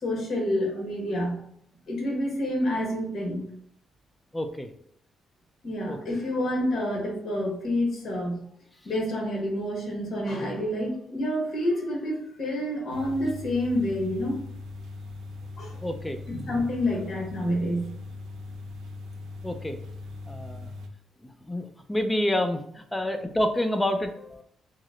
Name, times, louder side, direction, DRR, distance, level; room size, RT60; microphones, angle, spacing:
voice 1, 0.0-1.4 1.9-3.5 5.6-8.4 8.8-14.4 15.6-15.7 16.3-17.9, left 1 dB, 55° left, -1 dB, 1.0 m, -28 dB
voice 2, 4.3-4.7 5.9-6.0 15.8-16.2 19.4-19.8 20.3-20.7 21.5-24.4, left 1 dB, 10° left, 6 dB, 0.3 m, -28 dB
sound 1, 12.9-20.9, left 3 dB, 85° right, 0.4 m, -40 dB
2.8 x 2.0 x 3.6 m, 0.68 s
cardioid pair, 140°, 0 cm